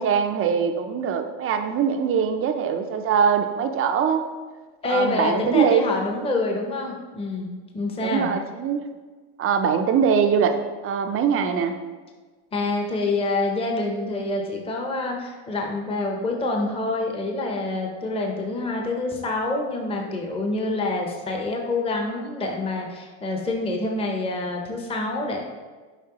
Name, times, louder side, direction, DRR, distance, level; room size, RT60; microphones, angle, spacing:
voice 1, 0.0-4.2 4.9-5.8 8.0-8.8 9.4-10.6 10.8-11.8, right 7 dB, 30° right, 6 dB, 0.4 m, -22 dB
voice 2, 4.8-8.3 12.5-25.4, left 2 dB, 10° left, 1 dB, 0.6 m, -27 dB
7.3 x 5.2 x 2.9 m, 1.4 s
cardioid pair, 135°, 49 cm